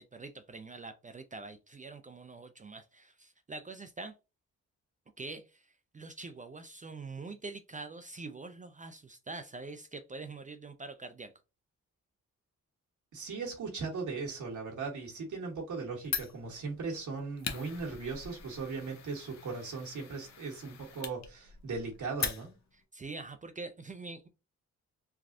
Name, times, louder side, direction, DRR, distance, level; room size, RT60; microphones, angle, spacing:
voice 1, 0.0-4.1 5.2-5.6 5.9-11.3 22.7-24.3, right 3 dB, 25° right, 8 dB, 0.4 m, -44 dB
voice 2, 13.1-22.5, right 4 dB, 65° right, -1 dB, 1.2 m, -38 dB
Fire, 16.0-22.8, left 7 dB, 55° left, 0.7 m, -41 dB
3.3 x 2.3 x 2.5 m, 0.29 s
supercardioid pair, 50°, 32 cm